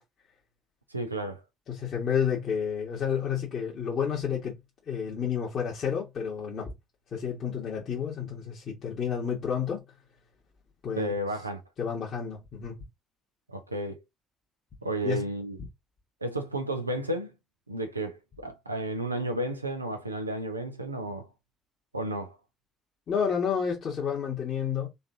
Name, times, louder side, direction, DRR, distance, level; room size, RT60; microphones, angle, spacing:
voice 1, 0.9-1.4 10.9-11.6 13.5-14.0 14.8-15.6 16.2-17.3 17.7-21.3 21.9-22.4, right 1 dB, 85° right, 0.7 m, -32 dB
voice 2, 1.7-4.6 4.9-6.7 7.1-9.8 10.8-11.1 11.8-12.8 15.0-15.2 23.1-24.9, left 7 dB, 45° left, 1.7 m, -30 dB
4.1 x 3.6 x 2.8 m
figure-of-eight pair, 50°, 0 cm